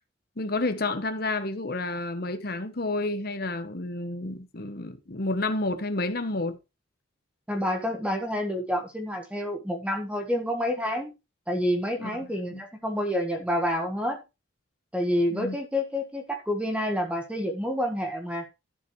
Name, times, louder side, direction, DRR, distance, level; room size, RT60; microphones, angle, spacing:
voice 1, 0.4-6.6 12.0-12.6 15.3-15.6, left 2 dB, 50° left, 1.1 m, -30 dB
voice 2, 7.5-11.1 11.5-14.2 14.9-18.5, equal, 5° right, 1.4 m, -28 dB
11.0 x 7.5 x 3.2 m
head